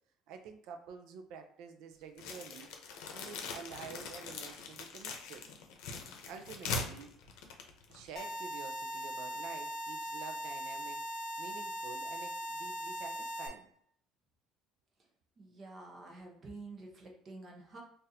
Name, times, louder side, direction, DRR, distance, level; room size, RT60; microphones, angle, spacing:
voice 1, 0.3-2.7 3.1-5.4 6.3-7.1 7.9-13.7, right 6 dB, 65° right, 6 dB, 0.4 m, -49 dB
sound 1, 2.2-8.3, left 4 dB, 80° left, 0.7 m, -42 dB
sound 2, 8.2-13.5, equal, 35° left, 0.6 m, -40 dB
voice 2, 15.4-17.8, right 3 dB, 25° right, 1 dB, 0.8 m, -49 dB
3.9 x 2.5 x 2.7 m, 0.64 s
cardioid pair, 170°, 0 cm